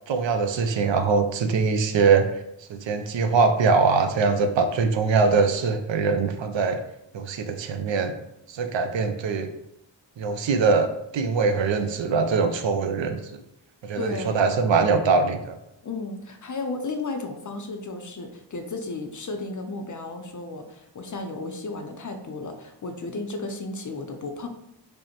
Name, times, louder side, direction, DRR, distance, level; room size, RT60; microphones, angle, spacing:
voice 1, 0.1-2.3 2.7-6.8 7.1-8.1 8.5-9.5 10.2-13.2 13.8-15.6, right 4 dB, 80° right, 7 dB, 0.5 m, -22 dB
voice 2, 14.0-14.4 15.8-24.5, left 3 dB, 45° left, 6 dB, 0.5 m, -34 dB
5.1 x 2.1 x 2.9 m, 0.80 s
wide cardioid pair, 85°, 44 cm